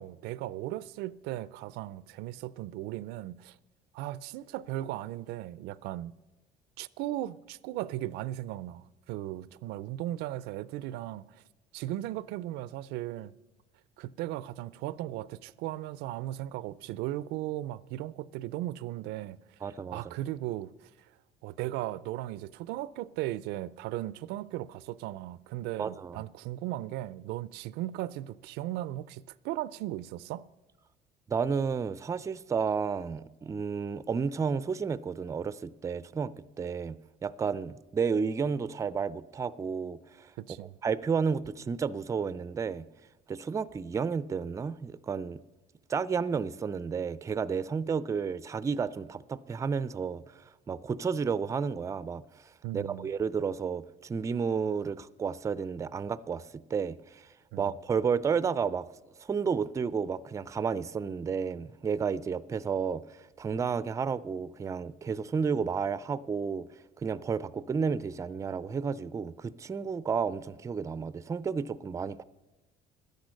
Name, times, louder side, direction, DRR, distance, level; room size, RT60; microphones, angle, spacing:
voice 1, 0.0-3.6 3.9-6.1 6.8-11.4 11.7-13.3 14.0-19.4 19.9-20.9 21.4-30.4 40.4-40.8 52.6-53.1 57.5-57.7, right 14 dB, 90° right, 0.4 m, -37 dB
voice 2, 19.6-20.0 25.8-26.2 31.3-40.3 40.8-42.9 43.3-45.4 45.9-50.2 50.7-52.2 52.7-56.4 56.7-57.2 57.6-58.9 59.2-66.7 67.0-72.2, right 6 dB, 20° right, 0.4 m, -31 dB
12.5 x 10.5 x 6.4 m
cardioid pair, 120°, 17 cm